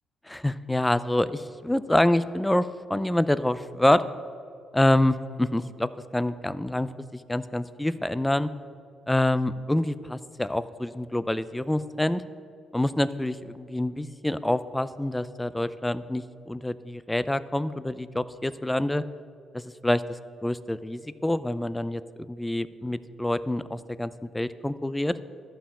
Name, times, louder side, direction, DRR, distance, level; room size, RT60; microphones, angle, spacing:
voice 1, 0.3-4.0 4.7-8.5 9.1-12.2 12.7-19.0 19.5-22.0 22.3-25.2, left 1 dB, 10° left, 15 dB, 0.5 m, -26 dB
12.0 x 5.7 x 8.5 m, 2.4 s
cardioid pair, 90°, 0 cm